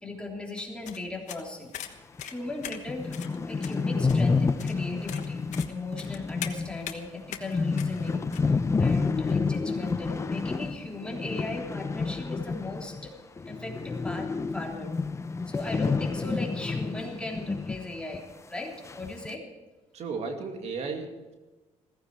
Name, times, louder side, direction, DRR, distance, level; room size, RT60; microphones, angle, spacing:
voice 1, 0.0-1.7 2.2-3.2 3.5-5.4 5.7-8.5 8.8-13.1 13.4-14.9 15.4-19.4, left 2 dB, 10° left, -1 dB, 3.3 m, -37 dB
sound 1, 0.6-8.4, left 10 dB, 80° left, 1.3 m, -42 dB
sound 2, 2.2-2.3 2.6-2.7 2.9-13.1 13.4-17.9 18.1-18.2 18.9-19.3, left 4 dB, 25° left, 0.7 m, -29 dB
voice 2, 19.9-21.3, right 4 dB, 65° right, 3 dB, 2.4 m, -34 dB
16.5 x 15.0 x 4.7 m, 1.2 s
cardioid pair, 115°, 12 cm